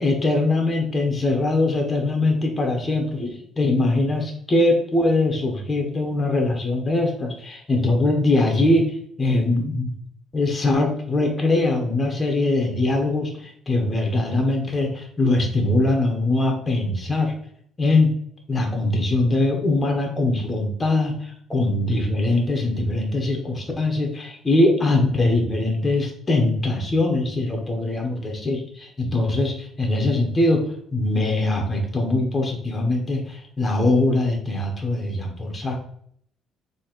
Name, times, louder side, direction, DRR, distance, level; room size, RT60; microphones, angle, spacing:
voice 1, 0.0-9.9 10.3-17.3 17.8-18.1 18.5-30.6 30.9-35.8, left 2 dB, 15° left, 1 dB, 0.9 m, -22 dB
4.1 x 2.9 x 4.4 m, 0.63 s
cardioid pair, 150°, 0 cm